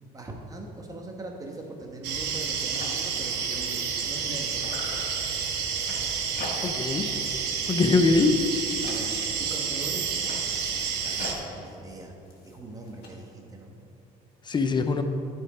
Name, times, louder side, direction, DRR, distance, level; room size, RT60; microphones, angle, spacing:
voice 1, 0.0-4.6 8.8-10.4 10.7-12.1 12.4-13.8, right 2 dB, 20° right, 1 dB, 1.2 m, -41 dB
sound 1, 1.5-1.7 2.0-2.1 2.3-4.3 4.6-7.0 7.3-7.7 8.0-9.5 10.0-13.1, left 2 dB, 65° left, 1.7 m, -43 dB
sound 2, 2.0-11.3, right 6 dB, 90° right, 0.9 m, -30 dB
voice 2, 6.6-7.1 7.7-8.5 14.5-15.0, left 3 dB, 25° left, 7 dB, 0.6 m, -22 dB
10.5 x 4.6 x 4.9 m, 2.7 s
cardioid pair, 110°, 17 cm